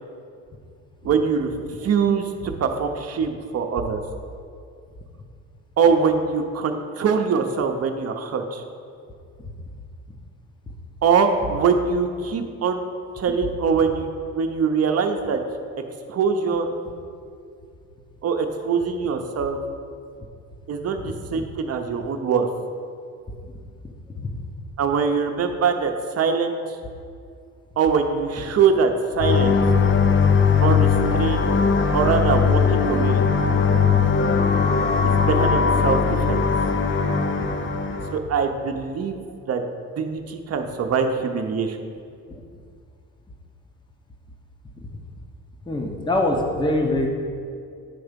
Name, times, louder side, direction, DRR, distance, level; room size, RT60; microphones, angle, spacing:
voice 1, 1.0-1.5 1.8-4.0 5.8-8.6 11.0-12.9 13.2-14.1 14.3-15.4 16.1-16.7 18.2-19.6 20.7-22.5 24.8-26.6 27.8-29.6 30.6-31.5 31.9-33.2 35.0-36.4 38.1-39.2 39.5-39.6 39.9-41.8, right 5 dB, 55° right, 5 dB, 0.8 m, -23 dB
sound 1, 29.2-38.2, left 5 dB, 40° left, 0.6 m, -19 dB
voice 2, 45.7-47.1, left 1 dB, 15° left, 1 dB, 0.9 m, -23 dB
10.0 x 3.5 x 5.2 m, 2.3 s
cardioid pair, 90°, 30 cm